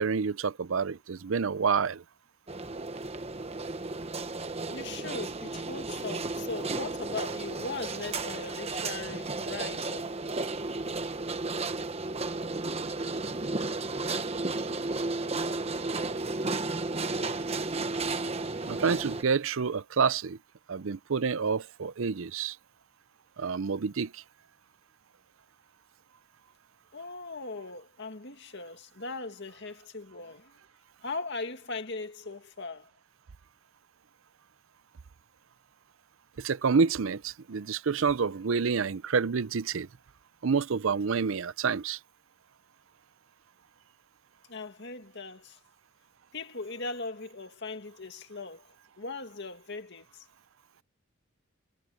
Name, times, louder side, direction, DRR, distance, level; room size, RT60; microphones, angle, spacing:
voice 1, 0.0-2.0 18.6-20.4 20.7-22.6 23.4-24.2 36.4-39.9 40.4-42.0, right 5 dB, 70° right, 0.6 m, -28 dB
sound 1, 2.5-19.2, right 3 dB, 30° right, 1.1 m, -33 dB
voice 2, 4.7-10.1 26.9-30.6 31.0-32.9 44.5-45.6 46.3-50.3, left 3 dB, 55° left, 2.1 m, -39 dB
head